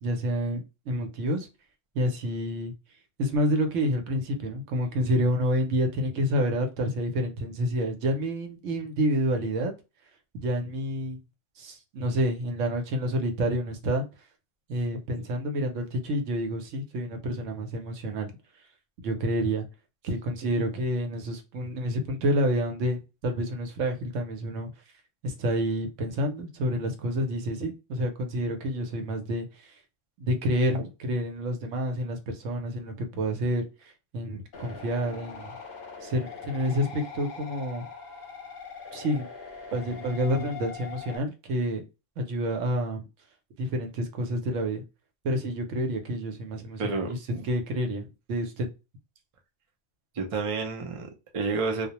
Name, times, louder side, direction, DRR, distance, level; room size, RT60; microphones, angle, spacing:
voice 1, 0.0-1.5 1.9-2.7 3.2-9.7 10.3-11.2 11.6-14.0 14.7-18.3 19.0-19.6 20.0-24.7 25.2-29.8 30.2-35.6 36.0-37.9 38.9-39.3 39.7-41.8 42.2-43.1 43.6-44.8 45.2-47.2 47.4-48.7, equal, 80° right, 1.0 m, -28 dB
sound 1, 34.5-41.2, left 6 dB, 50° left, 0.8 m, -42 dB
voice 2, 46.8-47.4 50.2-51.9, right 4 dB, 50° right, 0.4 m, -30 dB
2.3 x 2.0 x 2.8 m
omnidirectional pair, 1.2 m